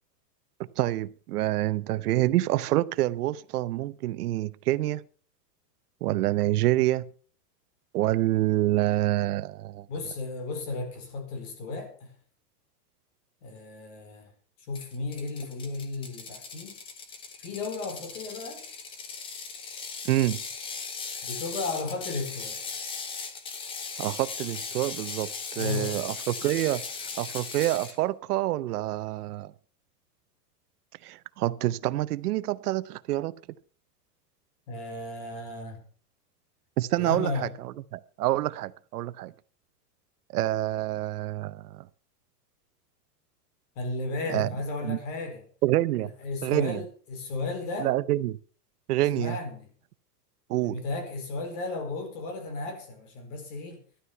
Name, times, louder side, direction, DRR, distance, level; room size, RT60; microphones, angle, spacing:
voice 1, 0.8-5.0 6.0-7.0 7.9-9.8 20.1-20.4 24.0-25.3 25.6-26.8 27.2-29.5 31.1-33.3 36.8-37.3 38.2-39.3 40.3-41.5 44.3-44.5 44.9-45.0 45.6-46.1 46.4-46.8 47.8-48.4 48.9-49.4 50.5-50.8, right 15 dB, 65° right, 0.7 m, -26 dB
voice 2, 9.9-12.1 13.4-14.3 14.7-16.8 17.4-18.6 21.2-22.6 25.5-26.0 34.7-35.8 37.0-37.6 43.8-45.4 46.0-48.0 49.0-49.7 50.6-53.8, left 3 dB, 50° left, 4.6 m, -34 dB
Ratchet pawl, 14.7-28.0, left 5 dB, 10° left, 0.7 m, -38 dB
12.5 x 11.0 x 5.6 m
supercardioid pair, 160°, 49 cm